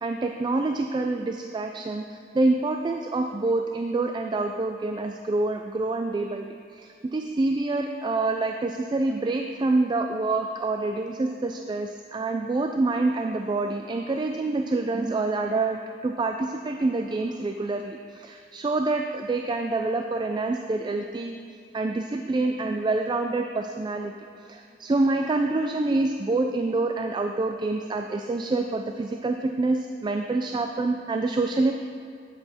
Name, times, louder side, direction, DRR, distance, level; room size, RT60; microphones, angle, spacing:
voice 1, 0.0-6.5 6.7-21.3 21.7-24.1 24.5-31.7, right 2 dB, 25° right, 4 dB, 0.3 m, -26 dB
8.5 x 7.6 x 4.2 m, 2.4 s
head